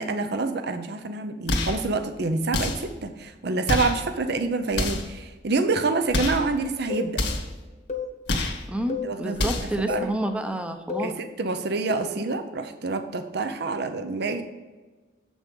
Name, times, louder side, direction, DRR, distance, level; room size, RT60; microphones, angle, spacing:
voice 1, 0.0-7.2 9.0-10.1 11.0-14.4, right 3 dB, 65° right, 9 dB, 0.7 m, -27 dB
sound 1, 1.5-1.9 2.5-2.9 3.7-4.0 4.7-5.2 6.1-6.5 7.1-7.6 8.3-8.6 9.3-9.8, left 2 dB, 80° left, 1.6 m, -27 dB
sound 2, 6.9-7.1 7.9-8.1 8.9-9.1 9.9-10.1 10.9-11.1 11.9-12.2, left 5 dB, 45° left, 1.1 m, -31 dB
voice 2, 8.7-11.1, right 1 dB, 5° right, 6 dB, 0.7 m, -29 dB
7.8 x 6.3 x 5.3 m, 1.3 s
head